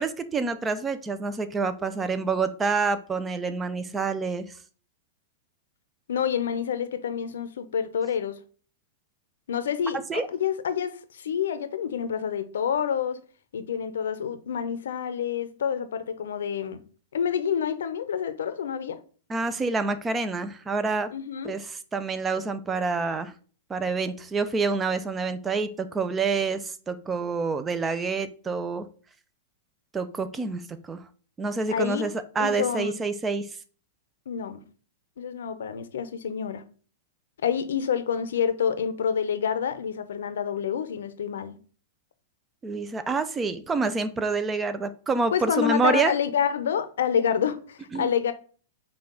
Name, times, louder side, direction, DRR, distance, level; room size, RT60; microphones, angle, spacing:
voice 1, 0.0-4.5 10.1-10.3 19.3-21.1 21.4-23.3 23.7-28.9 29.9-31.0 31.4-33.5 42.6-46.1 47.9-48.1, right 4 dB, 15° right, 0.5 m, -27 dB
voice 2, 6.1-8.4 9.5-13.2 13.5-16.8 17.1-19.0 21.1-21.5 31.7-32.1 32.4-32.9 34.3-34.6 35.2-36.6 37.4-41.6 45.3-48.3, left 8 dB, 80° left, 0.6 m, -28 dB
5.2 x 2.3 x 3.8 m
hypercardioid pair, 130°, 0 cm